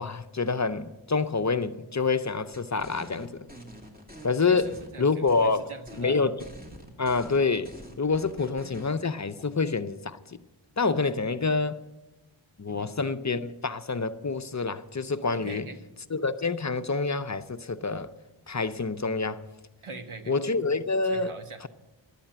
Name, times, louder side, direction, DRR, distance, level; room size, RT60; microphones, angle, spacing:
voice 1, 0.0-3.5 4.2-4.7 5.0-5.7 6.0-6.4 7.0-7.7 8.0-10.4 10.8-11.8 12.6-15.7 16.1-18.1 18.5-19.4 20.3-21.3, left 4 dB, 35° left, 0.6 m, -27 dB
sound 1, 2.5-4.3 4.6-5.6 5.9-6.1 6.4-9.0, equal, 20° right, 2.3 m, -46 dB
voice 2, 4.4-6.2 12.7-12.9 15.3-15.8 19.8-20.3 21.0-21.6, right 3 dB, 80° right, 1.2 m, -42 dB
12.0 x 8.6 x 9.0 m
wide cardioid pair, 55°, 49 cm